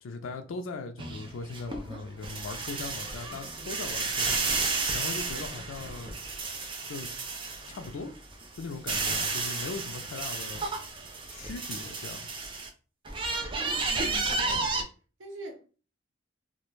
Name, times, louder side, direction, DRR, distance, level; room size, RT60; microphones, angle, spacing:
voice 1, 0.0-4.4 4.9-6.2 6.9-7.1 7.7-8.1 8.6-10.7 11.3-12.3, left 3 dB, 85° left, 0.4 m, -39 dB
sound 1, 1.0-7.9 8.3-12.7 13.0-14.8, right 3 dB, 25° right, 0.4 m, -32 dB
voice 2, 13.9-14.7 15.2-15.8, right 1 dB, 80° right, 0.6 m, -44 dB
2.3 x 2.1 x 3.0 m
head